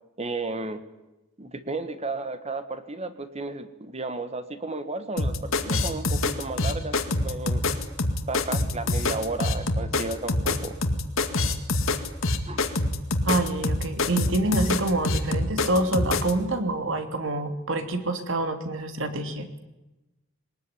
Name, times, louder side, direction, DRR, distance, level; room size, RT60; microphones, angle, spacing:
voice 1, 0.2-0.8 1.4-7.0 7.2-7.6 8.3-10.8 12.5-12.6, right 3 dB, 30° right, 10 dB, 1.7 m, -33 dB
sound 1, 5.2-16.3, left 2 dB, 75° left, 2.3 m, -25 dB
voice 2, 13.2-19.6, right 2 dB, 65° right, 7 dB, 3.1 m, -27 dB
22.0 x 19.5 x 10.0 m, 1.0 s
head